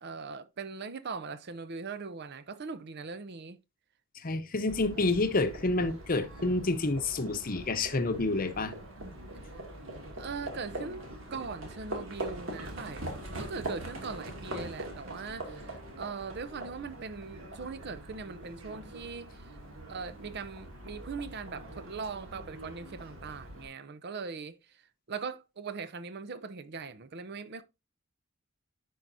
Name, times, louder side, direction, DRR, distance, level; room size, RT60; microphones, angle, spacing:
voice 1, 0.0-3.6 10.2-19.5 19.9-24.8 25.1-27.6, right 4 dB, 55° right, 0.6 m, -40 dB
voice 2, 4.1-8.7, left 2 dB, 45° left, 0.8 m, -29 dB
Livestock farm animals working animals, 4.7-23.7, right 1 dB, 70° right, 2.3 m, -43 dB
10.0 x 4.8 x 2.6 m
head